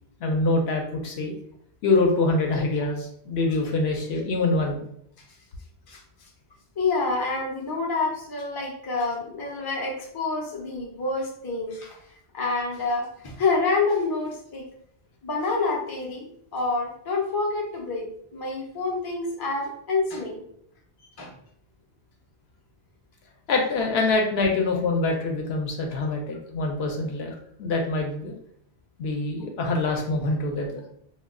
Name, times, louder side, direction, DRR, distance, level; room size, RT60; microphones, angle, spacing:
voice 1, 0.2-1.4 1.8-4.8 23.5-28.3 29.0-30.8, left 2 dB, 75° left, 1 dB, 0.8 m, -25 dB
voice 2, 5.9-6.3 6.8-12.0 12.3-14.7 15.2-16.3 16.5-18.1 18.3-20.4 21.2-21.3, left 3 dB, 30° left, -1 dB, 0.5 m, -27 dB
2.2 x 2.2 x 3.5 m, 0.67 s
omnidirectional pair, 1.1 m